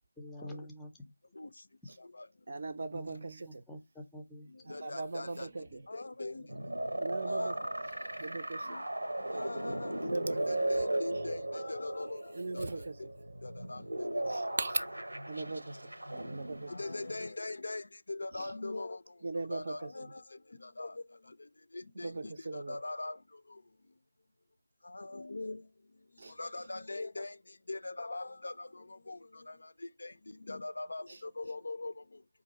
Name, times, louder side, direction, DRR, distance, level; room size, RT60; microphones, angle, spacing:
voice 1, 0.2-0.9 2.9-4.5 6.4-6.5, right 1 dB, 5° left, 0.6 m, -47 dB
voice 2, 2.5-3.6 4.6-5.9 7.0-7.6 8.0-8.8 10.0-10.6 12.3-13.0 14.3-14.8 15.3-15.9 16.2-16.7 18.3-18.5 19.2-19.9 21.9-22.8 26.2-26.7 31.1-31.2, right 3 dB, 40° right, 0.5 m, -39 dB
voice 3, 4.7-5.5 5.9-6.5 7.3-7.7 8.7-8.8 9.3-10.0 10.5-12.7 13.4-14.1 16.7-19.0 19.5-20.2 20.6-21.0 21.7-23.2 24.8-25.6 26.4-27.4 27.7-29.7 30.0-30.1 30.5-31.9, left 2 dB, 55° left, 0.3 m, -41 dB
sound 1, 6.5-17.3, right 1 dB, 70° right, 0.8 m, -37 dB
4.9 x 2.5 x 2.9 m
figure-of-eight pair, 160°, 0 cm